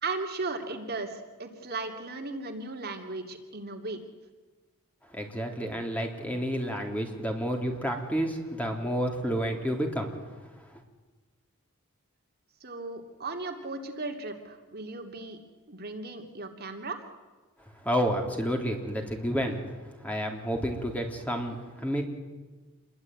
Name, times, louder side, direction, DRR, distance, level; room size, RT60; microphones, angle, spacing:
voice 1, 0.0-4.1 12.6-15.4 15.7-17.0, right 3 dB, 45° right, 3 dB, 2.7 m, -36 dB
voice 2, 5.1-10.1 10.7-10.8 17.8-19.8 20.0-22.0, equal, 5° left, 2 dB, 3.5 m, -30 dB
28.0 x 22.5 x 9.4 m, 1.3 s
head